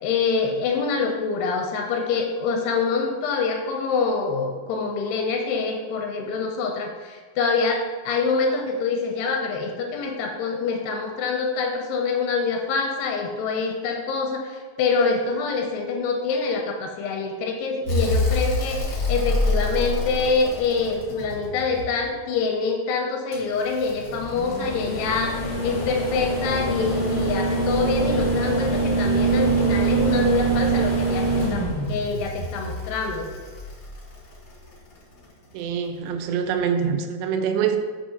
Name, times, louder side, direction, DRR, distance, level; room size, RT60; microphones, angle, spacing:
voice 1, 0.0-33.3, left 4 dB, 85° left, 3 dB, 2.5 m, -25 dB
sound 1, 17.9-22.0 23.3-34.5 36.1-36.2, right 2 dB, 50° left, 0.9 m, -25 dB
voice 2, 35.5-37.8, right 7 dB, 85° right, 7 dB, 2.7 m, -25 dB
8.0 x 3.0 x 5.6 m, 1.5 s
omnidirectional pair, 4.9 m